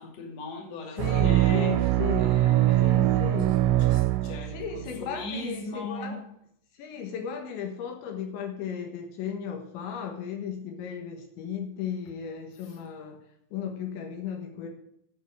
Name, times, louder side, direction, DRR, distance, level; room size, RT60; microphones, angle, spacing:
voice 1, 0.0-1.7 2.1-3.3 3.9-6.2, left 3 dB, 40° left, 0 dB, 3.1 m, -39 dB
voice 2, 0.9-2.4 2.8-3.6 4.5-6.2 6.7-13.2 13.5-14.7, left 7 dB, 75° left, 3 dB, 3.6 m, -35 dB
sound 1, 1.0-4.8, right 14 dB, 85° right, 3.1 m, -23 dB
14.5 x 5.5 x 6.6 m, 0.72 s
omnidirectional pair, 5.5 m